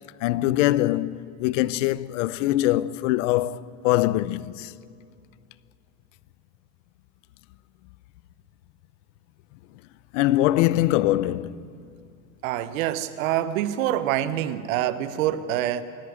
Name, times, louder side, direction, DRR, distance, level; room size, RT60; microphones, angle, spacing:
voice 1, 0.2-4.7 10.1-11.7, left 15 dB, 60° left, 0.8 m, -23 dB
voice 2, 12.4-15.8, right 12 dB, 75° right, 1.3 m, -26 dB
27.5 x 11.5 x 9.6 m
supercardioid pair, 170°, 41 cm